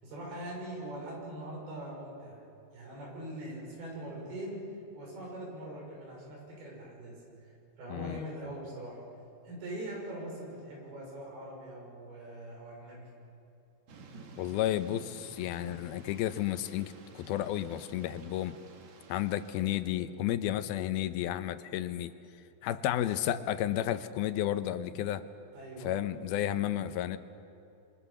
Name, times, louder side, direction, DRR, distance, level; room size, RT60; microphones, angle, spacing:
voice 1, 0.0-2.4 2.7-4.6 4.9-7.2 7.8-9.0 9.4-13.1 25.5-26.1, right 1 dB, 85° right, -2 dB, 8.1 m, -42 dB
Thunder / Rain, 13.9-19.8, right 3 dB, 55° right, 2.9 m, -52 dB
voice 2, 14.4-18.6 19.1-22.1 22.6-25.2 25.8-27.2, left 12 dB, 85° left, 11 dB, 2.8 m, -32 dB
27.0 x 24.5 x 7.1 m, 2.7 s
omnidirectional pair, 4.3 m